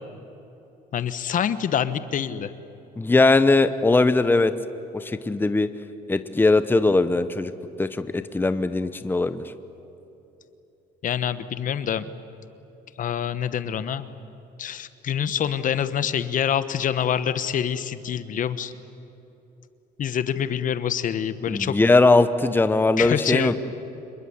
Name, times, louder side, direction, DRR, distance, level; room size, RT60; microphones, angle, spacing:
voice 1, 0.9-2.5 11.0-12.0 13.0-14.1 14.6-18.7 20.0-21.8 23.0-23.5, left 9 dB, 50° left, 13 dB, 1.2 m, -26 dB
voice 2, 3.0-4.5 4.9-5.7 6.1-7.5 7.8-9.5 21.5-23.5, left 3 dB, 10° left, 11 dB, 1.0 m, -20 dB
27.0 x 22.0 x 9.7 m, 3.0 s
cardioid pair, 110°, 17 cm